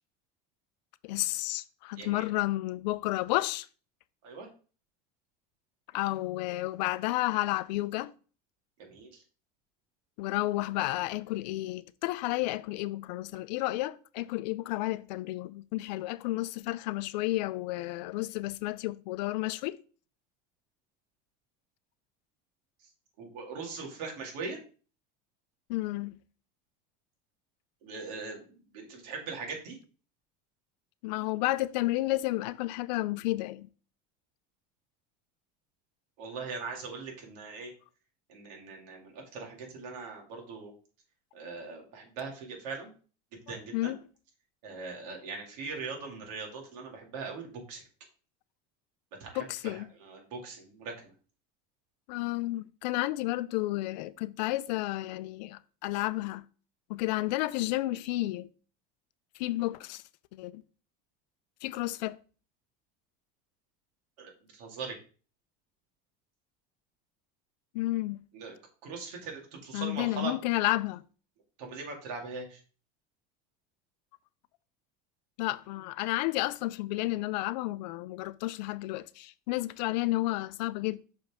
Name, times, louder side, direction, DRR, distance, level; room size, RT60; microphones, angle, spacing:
voice 1, 1.0-3.7 5.9-8.1 10.2-19.8 25.7-26.1 31.0-33.7 43.7-44.0 49.4-49.9 52.1-56.4 56.9-58.5 59.4-60.0 60.4-60.6 61.6-62.2 67.7-68.2 69.7-71.0 75.4-81.0, left 18 dB, 90° left, 0.5 m, -31 dB
voice 2, 8.8-9.2 23.2-24.6 27.8-29.8 36.2-37.7 38.3-40.7 41.3-42.9 43.3-43.9 44.6-47.8 49.2-50.9 64.2-65.0 68.3-68.5 68.8-70.3 71.6-72.6, right 4 dB, 70° right, 2.3 m, -40 dB
6.1 x 5.3 x 3.5 m
cardioid pair, 170°, 21 cm